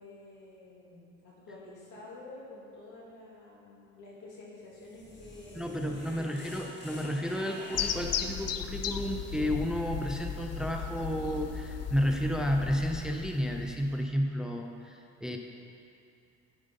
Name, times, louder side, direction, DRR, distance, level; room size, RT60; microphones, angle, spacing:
voice 1, 0.0-6.5, left 2 dB, 85° left, -5 dB, 2.3 m, -49 dB
sound 1, 4.6-8.5, left 1 dB, 35° left, 1.7 m, -48 dB
voice 2, 5.5-15.4, equal, ahead, 3 dB, 0.6 m, -32 dB
sound 2, 7.7-14.0, left 8 dB, 55° left, 0.5 m, -36 dB
9.5 x 5.3 x 5.3 m, 2.5 s
cardioid pair, 90°, 30 cm